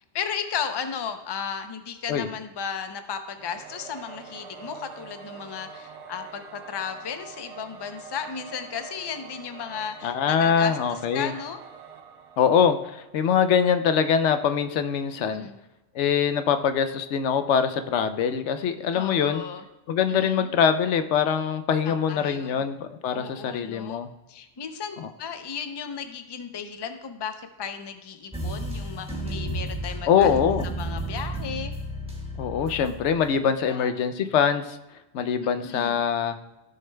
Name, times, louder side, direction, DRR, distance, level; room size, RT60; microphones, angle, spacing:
voice 1, 0.1-11.6 15.2-15.6 18.9-19.6 20.2-20.5 21.8-22.7 23.1-24.0 24.3-30.3 30.8-31.7 33.7-34.0 35.6-36.0, left 7 dB, 30° left, 8 dB, 0.5 m, -35 dB
Singing / Musical instrument, 3.4-13.4, right 6 dB, 75° right, 1.0 m, -45 dB
voice 2, 10.0-11.3 12.4-15.5 15.9-19.4 19.9-24.1 25.0-25.1 30.1-30.6 32.4-34.8 35.1-36.4, left 7 dB, 85° left, 10 dB, 0.9 m, -23 dB
sound 1, 28.3-33.4, right 1 dB, 5° right, 1.2 m, -33 dB
14.5 x 6.6 x 2.2 m, 0.97 s
omnidirectional pair, 1.2 m